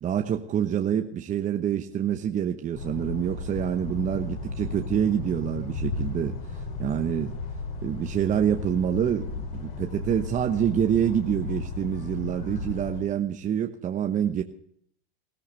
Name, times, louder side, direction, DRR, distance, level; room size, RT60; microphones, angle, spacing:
voice 1, 0.0-6.4 6.8-7.3 7.8-14.4, right 9 dB, 25° right, 5 dB, 1.0 m, -26 dB
sound 1, 2.7-13.0, left 3 dB, 65° left, 6.6 m, -34 dB
20.0 x 14.5 x 3.2 m, 0.65 s
hypercardioid pair, 125°, 31 cm